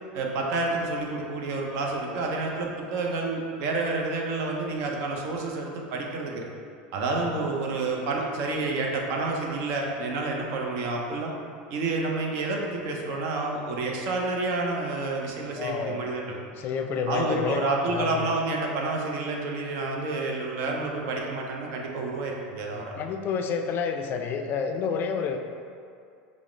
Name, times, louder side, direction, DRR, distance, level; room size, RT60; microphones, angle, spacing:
voice 1, 0.1-6.4 6.9-11.3 11.7-16.4 17.1-23.0, right 3 dB, 60° right, 0 dB, 0.6 m, -29 dB
voice 2, 15.6-16.0 16.5-18.3 22.7-25.4, left 6 dB, 45° left, 5 dB, 0.3 m, -29 dB
4.8 x 2.0 x 3.1 m, 2.4 s
supercardioid pair, 100°, 5 cm